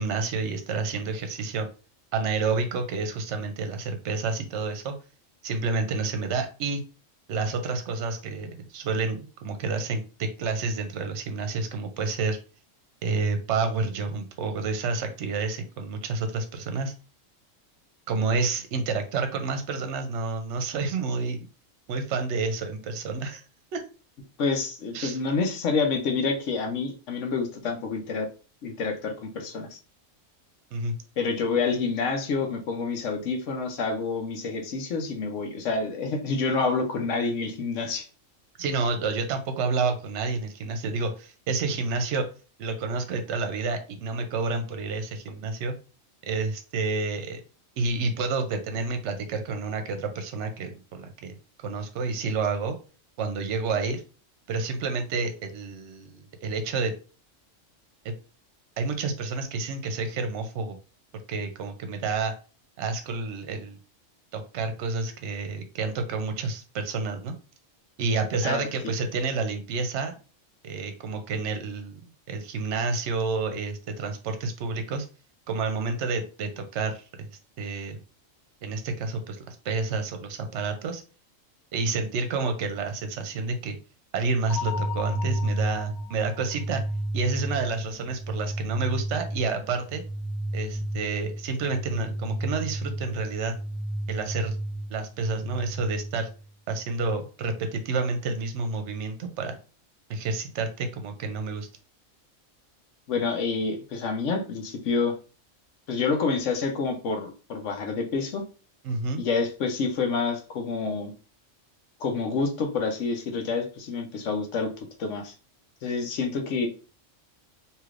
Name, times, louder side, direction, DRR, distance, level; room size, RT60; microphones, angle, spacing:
voice 1, 0.0-1.7 2.1-4.9 5.4-6.8 7.3-12.4 13.0-16.9 18.1-21.5 21.9-23.4 23.7-23.8 24.9-25.2 30.7-31.0 38.6-42.3 42.6-45.7 46.3-47.4 47.8-51.4 51.6-52.8 53.2-54.0 54.5-56.9 58.0-58.1 58.8-60.8 61.3-62.3 62.8-63.8 64.3-67.3 68.0-70.1 70.6-75.1 75.5-77.3 77.6-78.0 78.6-81.0 81.7-83.8 84.1-86.8 87.1-90.0 90.5-93.5 94.1-94.6 94.9-96.3 96.7-99.6 100.1-101.7 108.8-109.2, right 4 dB, 65° right, 7 dB, 0.9 m, -29 dB
voice 2, 24.4-28.3 28.6-29.8 31.2-38.1 68.4-68.7 103.1-105.1 105.9-108.4 109.2-111.1 112.0-114.7 115.0-115.3 115.8-116.7, left 4 dB, 70° left, 4 dB, 1.0 m, -28 dB
sound 1, 84.5-96.5, right 1 dB, 30° right, 0.4 m, -32 dB
3.2 x 2.8 x 2.4 m, 0.35 s
omnidirectional pair, 1.4 m